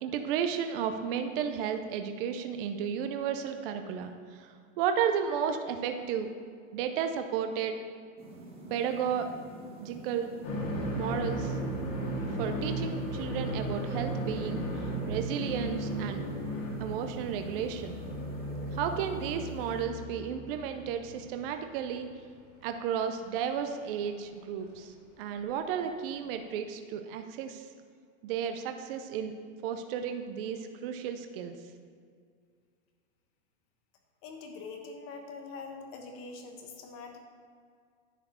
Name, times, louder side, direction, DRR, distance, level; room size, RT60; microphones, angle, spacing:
voice 1, 0.0-4.5 4.8-6.3 6.7-7.8 8.7-9.3 9.8-10.3 11.0-11.5 12.4-14.6 15.1-16.2 16.8-18.0 18.7-22.1 22.6-24.9 25.2-27.6 28.2-29.3 29.6-31.6, right 8 dB, 45° right, 7 dB, 0.6 m, -33 dB
sound 1, 8.2-19.8, right 2 dB, 15° right, 1.5 m, -46 dB
sound 2, 10.4-21.4 21.7-21.8 23.1-23.2 24.6-24.7 26.3-26.4, right 1 dB, 50° left, 2.5 m, -35 dB
voice 2, 34.2-37.2, left 4 dB, 35° left, 3 dB, 1.2 m, -44 dB
11.0 x 4.4 x 6.9 m, 2.2 s
supercardioid pair, 155°, 40 cm